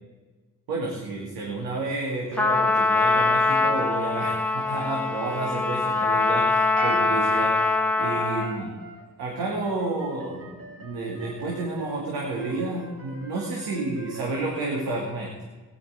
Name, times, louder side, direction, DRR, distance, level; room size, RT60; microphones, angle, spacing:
voice 1, 0.7-8.8 9.2-15.4, right 2 dB, 80° right, -1 dB, 2.5 m, -31 dB
Trumpet, 2.4-8.6, left 3 dB, 5° left, 2.1 m, -23 dB
sound 1, 6.4-15.0, right 2 dB, 60° right, 5.2 m, -41 dB
17.0 x 11.0 x 5.0 m, 1.3 s
hypercardioid pair, 45°, 38 cm